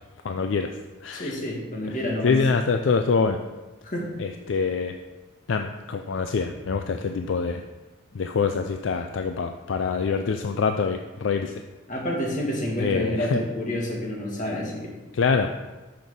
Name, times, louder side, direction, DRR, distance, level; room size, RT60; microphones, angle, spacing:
voice 1, 0.2-0.8 1.0-1.4 1.9-2.0 2.2-3.4 4.2-5.0 5.5-7.6 8.1-11.6 12.8-13.4 15.1-15.5, left 5 dB, 65° left, 6 dB, 0.4 m, -25 dB
voice 2, 1.1-2.3 3.8-4.1 11.9-14.9, left 1 dB, 40° left, -1 dB, 1.7 m, -28 dB
6.6 x 6.1 x 5.3 m, 1.2 s
head